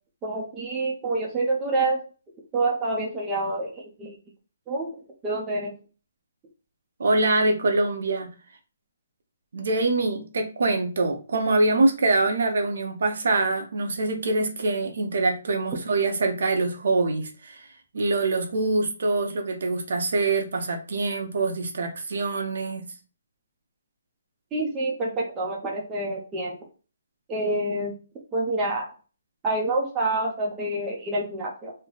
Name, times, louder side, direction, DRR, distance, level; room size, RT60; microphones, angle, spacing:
voice 1, 0.2-2.0 2.5-4.1 4.7-4.9 5.2-5.7 24.5-26.6 27.3-27.9 28.3-28.9 29.4-31.7, right 2 dB, 10° right, -3 dB, 0.7 m, -27 dB
voice 2, 7.0-8.3 9.5-17.6 17.9-22.9, right 2 dB, 60° right, 4 dB, 0.8 m, -24 dB
3.2 x 2.2 x 3.8 m, 0.36 s
hypercardioid pair, 170°, 0 cm